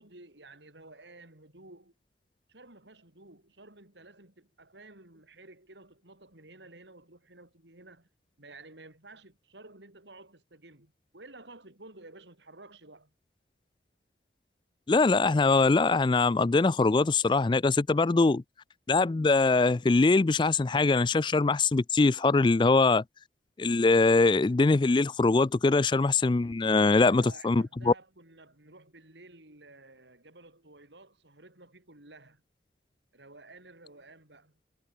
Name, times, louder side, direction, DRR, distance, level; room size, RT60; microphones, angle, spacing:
voice 1, 0.0-1.9 2.5-8.1 8.4-13.1 26.6-32.4 33.1-34.6, right 2 dB, 75° right, 4.4 m, -52 dB
voice 2, 14.9-18.4 18.9-23.0 23.6-27.9, left 3 dB, 25° left, 0.4 m, -23 dB
head